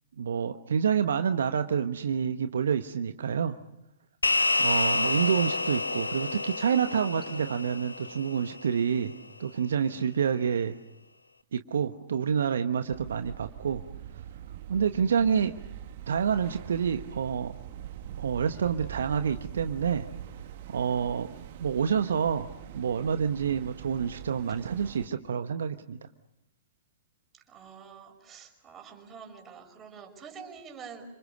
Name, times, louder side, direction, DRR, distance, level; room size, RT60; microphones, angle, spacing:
voice 1, 0.2-3.6 4.6-9.1 9.4-10.8 11.5-13.8 14.7-15.5 16.1-17.5 18.2-20.1 20.7-21.3 21.6-22.5 22.7-26.0, right 7 dB, 70° right, 8 dB, 1.2 m, -28 dB
sound 1, 4.2-8.9, left 3 dB, 85° left, 1.2 m, -29 dB
sound 2, 12.9-25.1, right 11 dB, 55° right, 2.1 m, -43 dB
voice 2, 27.5-31.1, right 6 dB, 20° right, 5 dB, 5.5 m, -46 dB
29.5 x 26.5 x 6.7 m, 0.80 s
figure-of-eight pair, 105°, 0 cm